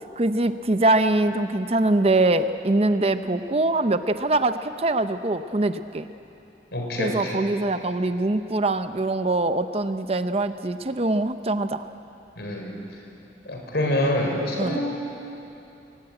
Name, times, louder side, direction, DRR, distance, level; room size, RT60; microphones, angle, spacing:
voice 1, 0.0-6.1 7.0-11.9 14.6-14.8, right 2 dB, 35° right, 10 dB, 0.6 m, -23 dB
voice 2, 6.7-7.4 12.4-12.8 13.4-14.8, left 1 dB, 70° left, 1 dB, 4.9 m, -26 dB
22.5 x 18.5 x 9.0 m, 2.9 s
head